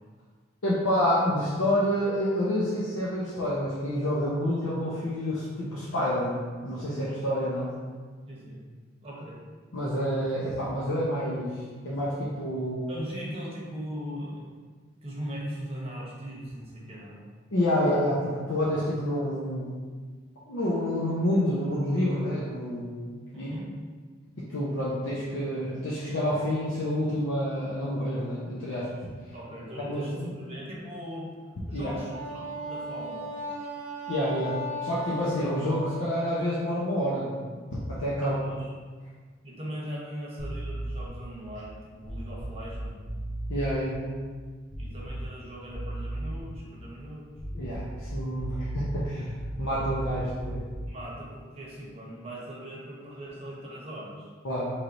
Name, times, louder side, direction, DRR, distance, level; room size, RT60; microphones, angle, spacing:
voice 1, 0.6-7.7 9.7-11.6 11.8-12.9 17.5-19.7 20.5-23.5 24.4-28.9 29.8-30.3 31.7-31.9 34.1-34.6 34.8-37.4 37.9-38.3 43.5-44.2 47.5-50.6 54.4-54.7, equal, 75° left, -8 dB, 0.7 m, -28 dB
voice 2, 8.3-8.6 9.0-9.4 12.9-14.5 15.0-17.2 23.3-23.7 29.3-31.3 31.7-33.7 38.2-38.7 39.4-43.0 44.8-47.3 50.8-54.3, equal, 30° right, -5 dB, 0.9 m, -39 dB
Wind instrument woodwind instrument, 32.1-36.3, right 1 dB, 70° right, 0.6 m, -37 dB
sound 1, 40.4-41.3 42.0-43.9 44.7-45.4 45.7-46.7 47.3-51.0, right 1 dB, 10° left, 0.5 m, -36 dB
4.3 x 3.2 x 2.6 m, 1.5 s
head